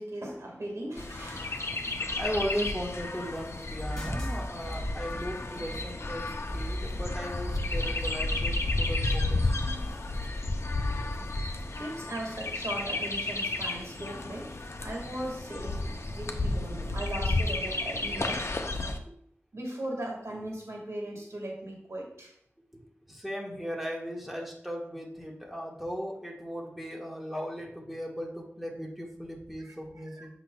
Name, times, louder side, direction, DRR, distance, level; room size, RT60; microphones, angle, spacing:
voice 1, 0.0-1.7 11.8-14.5 14.8-18.4 19.5-22.3 29.6-29.7 30.2-30.3, right 1 dB, 90° right, -1 dB, 1.7 m, -38 dB
Chirp tweet, 1.0-19.0, left 2 dB, 70° left, 0.6 m, -32 dB
voice 2, 2.2-9.5 16.2-17.0 19.0-19.1 22.7-30.3, equal, 5° right, -2 dB, 1.5 m, -37 dB
sound 1, 3.8-9.9, equal, 15° left, 2.3 m, -38 dB
7.7 x 5.8 x 2.2 m, 0.68 s
wide cardioid pair, 60°, 5 cm